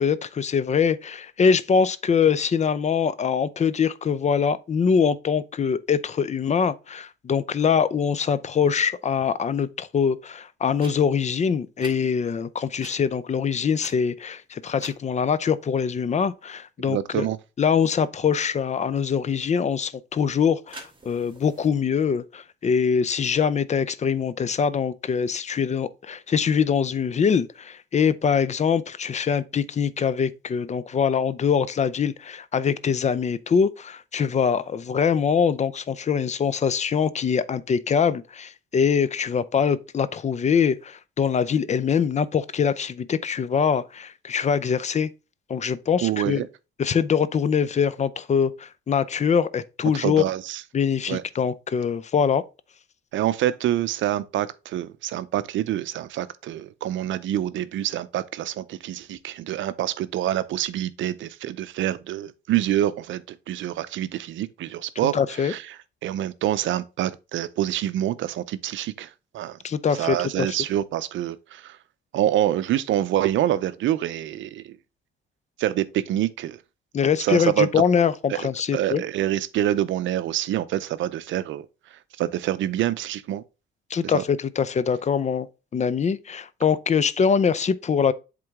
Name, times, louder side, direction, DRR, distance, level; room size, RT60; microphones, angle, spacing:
voice 1, 0.0-17.3 17.6-45.1 45.5-46.4 46.8-50.2 50.7-52.4 65.1-65.5 69.6-70.6 76.9-79.0 83.9-85.5 85.7-88.1, left 6 dB, 35° left, 0.5 m, -23 dB
sound 1, 10.7-10.9 11.8-11.9 12.8-12.9 13.8-14.3 14.8-15.0 20.7-21.7, right 2 dB, 25° right, 2.2 m, -43 dB
voice 2, 16.8-17.4 46.0-46.5 49.9-50.6 51.1-51.2 53.1-65.2 65.4-65.6 66.0-69.6 69.9-71.8 72.1-74.8 75.6-76.6 77.2-77.7 78.3-81.7 82.2-83.4 84.0-84.2, right 12 dB, 75° right, 0.5 m, -26 dB
7.7 x 3.7 x 3.5 m
cardioid pair, 90°, 20 cm